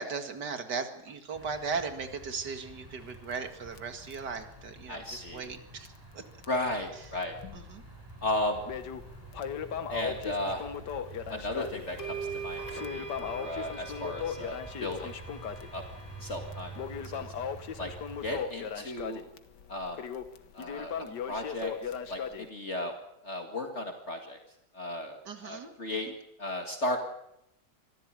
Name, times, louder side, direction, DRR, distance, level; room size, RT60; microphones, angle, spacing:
voice 1, 0.0-5.9 6.1-6.2 6.9-7.1 7.5-7.8 25.2-26.1, right 5 dB, 70° right, 7 dB, 2.6 m, -37 dB
sound 1, 1.3-18.4, right 2 dB, 15° right, 4.3 m, -48 dB
Crackle, 2.9-5.6 5.9-6.0 6.4-6.5 7.2-7.8 8.2-22.5, left 7 dB, 75° left, 1.8 m, -38 dB
voice 2, 4.9-5.4 6.5-7.4 8.2-8.6 9.9-10.6 11.3-12.2 12.4-15.1 15.7-15.8 16.2-16.7 17.0-17.3 17.8-17.9 18.2-19.2 19.7-20.0 20.5-20.9 21.3-21.7 22.1-22.2 22.5-22.9 23.2-24.4 24.7-25.2 25.4-26.1 26.4-27.0, left 1 dB, 40° left, 3 dB, 2.3 m, -34 dB
sound 2, 11.4-11.5 12.0-16.8, right 5 dB, 55° left, 5.2 m, -42 dB
24.5 x 15.0 x 9.0 m, 0.83 s
omnidirectional pair, 1.9 m